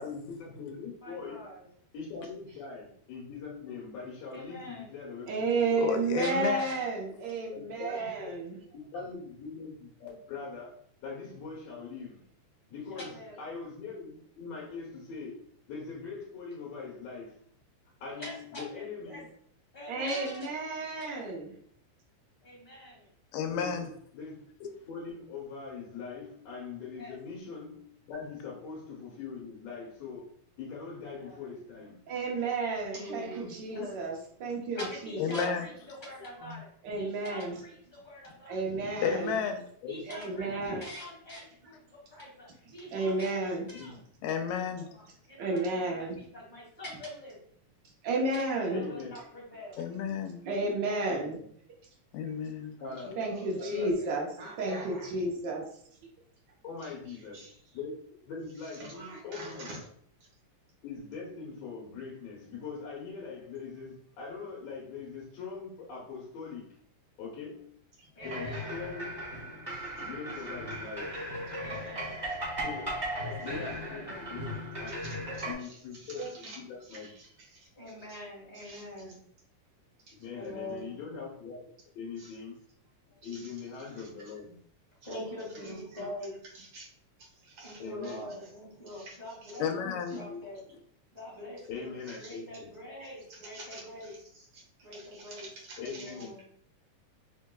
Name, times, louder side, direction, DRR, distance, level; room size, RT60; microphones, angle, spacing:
voice 1, 0.0-1.4 1.9-5.8 7.5-8.3 8.9-12.3 12.7-15.4 15.7-17.4 18.0-19.2 23.5-23.9 24.1-32.0 39.8-40.0 43.8-43.9 48.7-49.1 51.1-51.5 52.8-54.0 56.6-57.9 58.3-59.0 59.2-59.7 60.8-66.8 67.2-67.7 68.2-69.2 70.0-71.4 72.6-72.9 73.4-74.5 74.8-75.0 75.5-77.1 80.2-81.6 81.9-82.6 83.2-84.6 87.8-88.3 90.2-90.4 91.7-92.7 95.8-96.4, left 5 dB, 65° left, -4 dB, 1.9 m, -42 dB
voice 2, 1.0-1.7 4.3-4.9 6.2-7.0 7.7-8.2 12.7-13.4 18.1-19.2 19.7-20.6 20.9-21.2 22.4-23.1 26.9-27.2 31.0-31.5 32.4-34.0 34.7-39.5 39.8-43.4 43.7-44.0 44.2-47.4 48.2-49.8 68.1-68.7 71.5-72.2 73.1-74.3 77.7-79.1 80.3-80.9 85.0-86.3 87.6-90.6 91.1-94.1 94.8-95.5 95.8-96.4, left 1 dB, 20° left, -5 dB, 1.4 m, -45 dB
voice 3, 5.3-8.6 19.9-21.5 32.1-34.1 34.4-35.5 36.8-37.5 38.5-39.4 40.1-40.8 42.9-43.6 45.4-46.2 48.0-48.8 50.4-51.4 52.6-52.7 53.2-54.3 54.6-55.6, right 3 dB, 80° right, -2 dB, 1.0 m, -32 dB
voice 4, 5.8-6.7 23.3-23.9 35.2-35.7 39.0-39.6 44.2-44.9 49.8-50.4 52.1-52.8 89.6-90.3, left 7 dB, 85° left, 6 dB, 2.0 m, -31 dB
voice 5, 33.0-33.5 36.3-36.6 53.1-54.1 54.4-55.1 56.8-57.5 58.8-59.8 68.0-68.1 68.5-68.7 69.7-70.1 74.9-77.7 78.5-78.8 80.1-80.2 82.2-82.4 83.2-83.5 83.8-84.3 85.5-86.1 86.5-86.9 87.4-88.1 88.9-89.2 89.4-89.5 90.1-90.2 92.1-92.3 93.3-94.6 94.9-96.1, right 1 dB, 50° right, -3 dB, 1.8 m, -46 dB
sound 1, 68.2-75.5, equal, 20° right, 1.0 m, -37 dB
5.0 x 3.6 x 2.2 m, 0.62 s
omnidirectional pair, 3.3 m